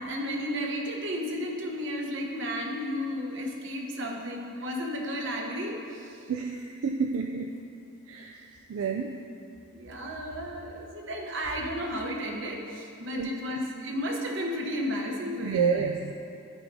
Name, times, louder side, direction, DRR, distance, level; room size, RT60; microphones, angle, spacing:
voice 1, 0.0-6.2 9.7-15.9, equal, 60° right, 0 dB, 0.9 m, -33 dB
voice 2, 6.3-7.5 8.1-9.2 13.2-13.6 15.4-16.1, right 5 dB, 75° right, 3 dB, 0.3 m, -30 dB
12.0 x 4.8 x 2.7 m, 2.5 s
head